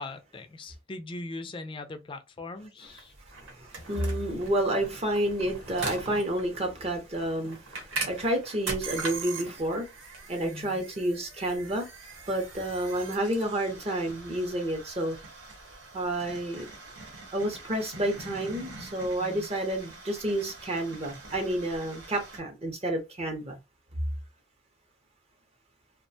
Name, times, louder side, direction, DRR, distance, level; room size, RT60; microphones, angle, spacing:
voice 1, 0.0-3.1 10.4-10.8 19.2-19.5, left 2 dB, 25° left, 0.3 m, -40 dB
sound 1, 2.9-22.4, right 3 dB, 90° right, 0.9 m, -42 dB
voice 2, 3.4-9.9 10.3-11.9 12.3-15.2 15.9-16.7 17.3-23.6, right 1 dB, 30° right, 0.5 m, -30 dB
2.3 x 2.1 x 2.6 m
head